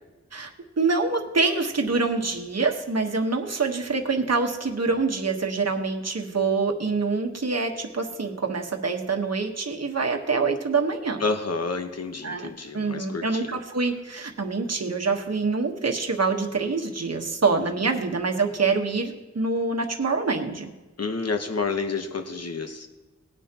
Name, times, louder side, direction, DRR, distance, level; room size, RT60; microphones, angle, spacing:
voice 1, 0.8-11.2 12.2-12.5 12.7-20.7, right 4 dB, 60° right, 3 dB, 1.3 m, -25 dB
voice 2, 11.2-13.5 17.6-17.7 21.0-22.9, left 4 dB, 60° left, 6 dB, 1.1 m, -29 dB
19.0 x 9.6 x 2.9 m, 1.1 s
wide cardioid pair, 80°, 29 cm